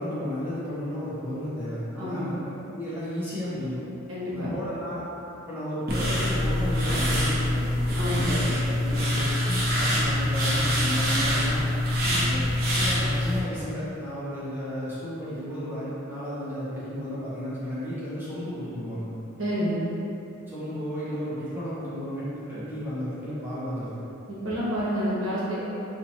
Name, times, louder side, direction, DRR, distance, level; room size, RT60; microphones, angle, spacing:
voice 1, 0.0-2.3 2.7-3.8 4.3-5.0 5.5-11.6 12.2-19.1 20.5-23.9 25.5-25.7, equal, 10° right, -12 dB, 0.8 m, -33 dB
voice 2, 2.0-2.3 4.1-4.5 7.9-8.3 12.0-12.3 19.4-19.8 24.3-25.8, equal, 70° right, -9 dB, 1.2 m, -29 dB
sound 1, 5.9-13.4, left 1 dB, 45° right, 0.7 m, -25 dB
4.3 x 2.8 x 2.9 m, 2.8 s
head